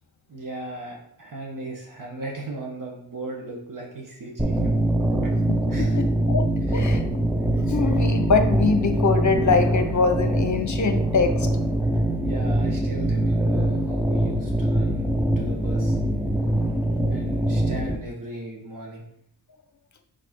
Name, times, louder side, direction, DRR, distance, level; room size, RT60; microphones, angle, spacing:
voice 1, 0.3-4.7 5.2-5.3 5.7-6.0 6.7-6.9 12.2-15.1 15.4-16.0 17.1-19.0, right 2 dB, 50° right, -1 dB, 1.6 m, -37 dB
sound 1, 4.4-18.0, right 1 dB, 5° right, 0.7 m, -23 dB
voice 2, 5.5-6.5 6.7-7.0 7.7-11.5, left 4 dB, 45° left, 8 dB, 1.0 m, -23 dB
4.9 x 4.6 x 4.6 m, 0.71 s
cardioid pair, 75°, 41 cm